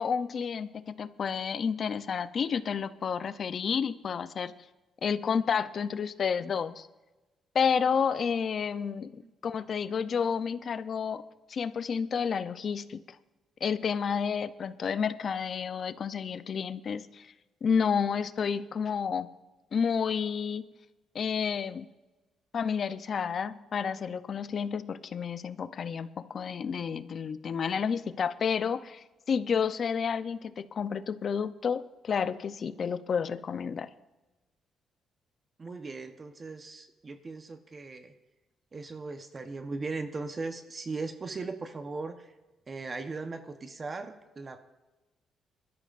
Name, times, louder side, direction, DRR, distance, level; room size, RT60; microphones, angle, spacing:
voice 1, 0.0-4.5 5.0-6.9 7.5-11.2 11.5-13.0 13.6-17.3 17.6-19.3 19.7-20.6 21.1-21.9 22.5-33.9, left 6 dB, 50° left, 14 dB, 0.6 m, -30 dB
voice 2, 35.6-38.1 38.7-42.3 42.7-44.6, right 3 dB, 35° right, 7 dB, 0.9 m, -38 dB
20.5 x 13.0 x 2.5 m, 1.1 s
cardioid pair, 90°, 0 cm